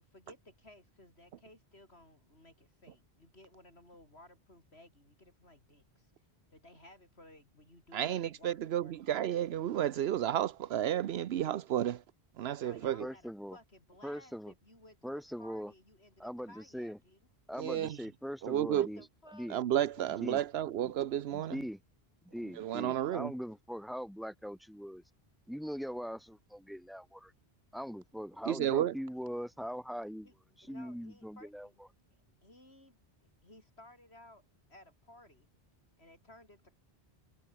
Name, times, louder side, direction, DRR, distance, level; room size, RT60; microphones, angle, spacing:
voice 1, 0.0-6.1 6.5-9.0 12.6-17.2 18.7-19.5 20.0-20.1 30.2-30.3 30.6-31.8 32.1-35.5 36.0-36.8, left 1 dB, 85° left, 7.7 m, -58 dB
voice 2, 7.9-12.0 12.4-13.1 17.6-18.1 18.4-18.9 19.5-21.6 22.5-23.3 28.5-28.9, right 11 dB, 80° right, 0.9 m, -32 dB
voice 3, 13.0-13.6 14.0-14.5 15.0-15.7 16.2-17.0 17.5-19.0 19.3-19.6 20.2-20.4 21.3-21.8 22.3-25.0 25.5-27.3 27.7-30.3 30.6-31.7, equal, ahead, 3.1 m, -41 dB
omnidirectional pair, 1.1 m